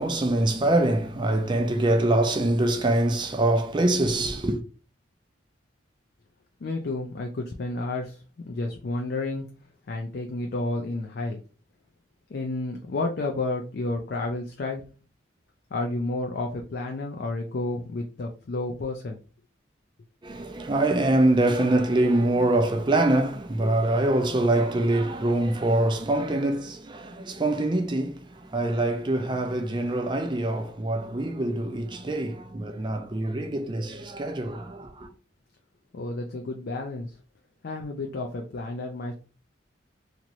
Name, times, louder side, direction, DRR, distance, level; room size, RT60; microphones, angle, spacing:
voice 1, 0.0-4.6 20.2-35.1, right 1 dB, 25° right, 0.4 m, -24 dB
voice 2, 6.6-9.5 9.9-11.4 12.3-14.9 15.7-19.2 35.9-37.1 37.6-39.1, left 2 dB, 55° left, 0.4 m, -31 dB
2.9 x 2.9 x 2.5 m
head